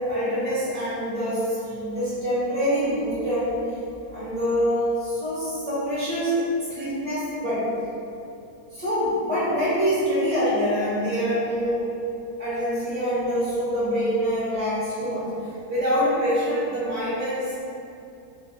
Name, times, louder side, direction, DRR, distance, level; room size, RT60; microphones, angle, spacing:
voice 1, 0.1-3.7 4.1-6.4 6.7-7.7 8.7-11.9 12.4-17.6, equal, 20° right, -13 dB, 1.4 m, -25 dB
3.9 x 3.4 x 3.8 m, 2.6 s
omnidirectional pair, 1.9 m